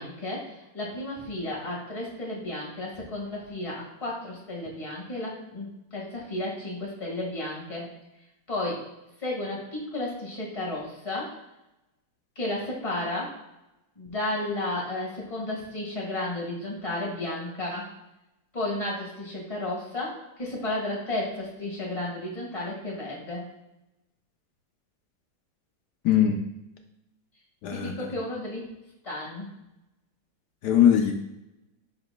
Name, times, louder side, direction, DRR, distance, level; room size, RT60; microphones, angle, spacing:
voice 1, 0.0-7.9 8.5-8.9 9.2-11.4 12.3-13.3 13.9-17.9 18.5-23.5 27.7-28.7 29.0-29.5, left 1 dB, 20° left, -3 dB, 1.6 m, -33 dB
voice 2, 26.0-26.4 27.6-28.1 30.6-31.1, left 9 dB, 70° left, 4 dB, 1.1 m, -21 dB
10.5 x 4.0 x 2.2 m, 0.91 s
omnidirectional pair, 2.1 m